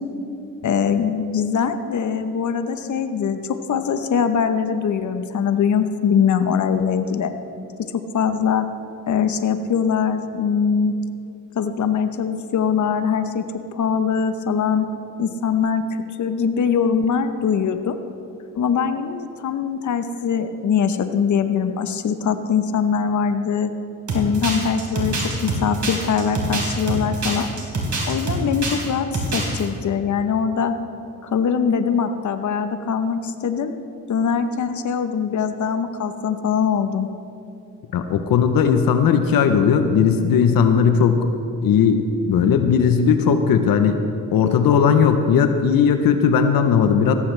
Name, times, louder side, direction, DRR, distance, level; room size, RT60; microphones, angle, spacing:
voice 1, 0.6-3.4 3.7-7.3 7.8-8.7 9.1-10.9 11.5-13.4 13.7-14.9 15.2-15.8 16.2-18.0 18.6-23.7 24.1-25.2 25.4-27.5 28.1-30.7 31.2-33.7 34.1-37.1, left 7 dB, 60° left, 9 dB, 0.9 m, -22 dB
sound 1, 24.1-28.8 29.1-29.6, right 2 dB, 55° right, 3.8 m, -25 dB
voice 2, 37.9-41.2 41.6-44.0 44.3-47.1, left 7 dB, 85° left, 7 dB, 0.8 m, -17 dB
16.0 x 14.0 x 3.3 m, 2.7 s
cardioid pair, 75°, 34 cm